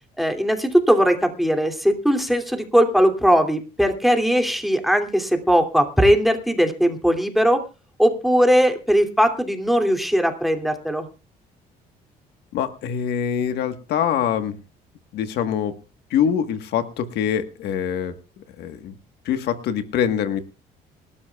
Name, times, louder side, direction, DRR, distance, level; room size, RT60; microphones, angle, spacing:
voice 1, 0.2-7.6 8.0-11.1, equal, ahead, 4 dB, 2.6 m, -19 dB
voice 2, 12.5-14.6 15.1-15.7 16.1-19.0 19.2-20.4, left 8 dB, 75° left, 8 dB, 1.4 m, -24 dB
26.0 x 12.5 x 2.4 m, 0.32 s
cardioid pair, 110°, 17 cm